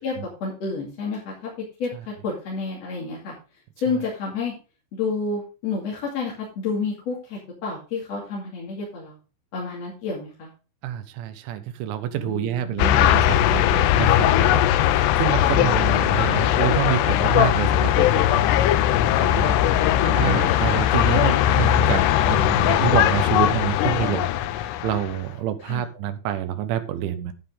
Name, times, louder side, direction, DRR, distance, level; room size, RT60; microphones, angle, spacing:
voice 1, 0.0-3.3 3.8-4.6 4.9-9.1 9.5-10.5 12.2-13.0 15.5-16.8 19.7-20.4 25.6-25.8, left 4 dB, 45° left, -3 dB, 2.8 m, -30 dB
voice 2, 10.8-18.4 19.2-19.6 20.0-24.3 24.6-27.3, right 11 dB, 80° right, 9 dB, 3.4 m, -27 dB
sound 1, 12.8-25.2, left 12 dB, 85° left, 2.4 m, -19 dB
10.0 x 9.1 x 3.7 m, 0.33 s
omnidirectional pair, 5.4 m